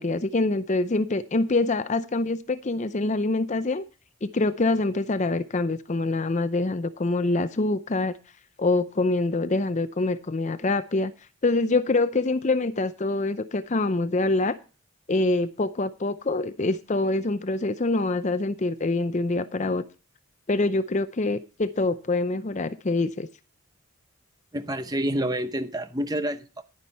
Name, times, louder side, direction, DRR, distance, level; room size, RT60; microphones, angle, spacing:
voice 1, 0.0-3.8 4.2-8.2 8.6-11.1 11.4-14.6 15.1-19.8 20.5-23.3, left 2 dB, 35° left, 0.5 m, -25 dB
voice 2, 24.5-26.6, right 1 dB, 20° right, 0.9 m, -28 dB
11.0 x 9.9 x 4.2 m
head